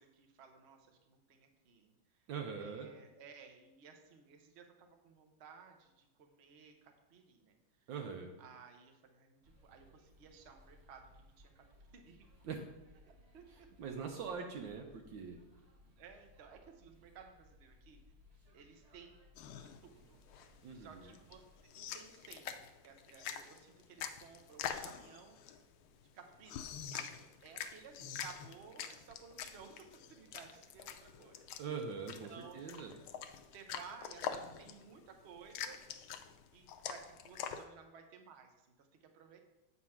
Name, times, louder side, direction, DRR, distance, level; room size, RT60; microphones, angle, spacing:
voice 1, 0.0-2.3 2.6-7.6 8.4-11.1 11.4-11.7 11.9-12.3 13.0-13.7 16.0-18.0 18.5-19.2 19.5-20.2 20.7-21.4 21.7-22.5 22.8-25.4 26.0-26.7 26.9-31.4 32.3-33.0 33.5-35.8 36.5-39.4, right 6 dB, 50° right, 4 dB, 0.8 m, -57 dB
voice 2, 2.3-2.9 7.9-8.3 12.4-12.6 13.8-15.4 20.6-21.1 31.6-32.9, right 6 dB, 75° right, 2 dB, 1.4 m, -42 dB
sound 1, 9.4-21.7, left 1 dB, 25° right, 0.9 m, -64 dB
sound 2, 19.4-37.6, left 8 dB, 85° left, 1.4 m, -46 dB
8.4 x 4.3 x 5.7 m, 1.0 s
omnidirectional pair, 2.2 m